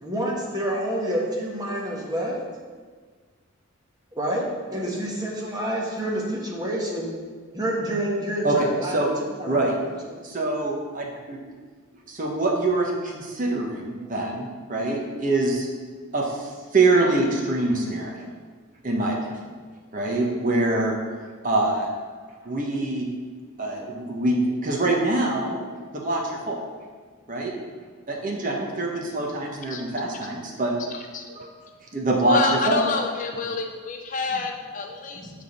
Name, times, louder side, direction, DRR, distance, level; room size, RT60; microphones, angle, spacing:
voice 1, 0.0-2.4 4.1-7.1 7.5-9.1 9.4-9.7 10.1-10.2 34.3-34.4 35.1-35.3, right 1 dB, 20° right, -3 dB, 1.4 m, -28 dB
voice 2, 10.2-11.4 12.1-15.7 16.1-18.1 18.8-19.2 19.9-20.9 21.4-21.9 22.4-23.1 23.6-25.6 25.9-26.6 27.3-27.5 28.1-30.7 31.4-31.5 31.9-32.4 32.7-32.8, right 2 dB, 40° right, -1 dB, 1.0 m, -24 dB
voice 3, 30.9-31.2 32.3-35.3, left 4 dB, 40° left, 4 dB, 0.5 m, -28 dB
7.4 x 3.7 x 6.4 m, 1.5 s
head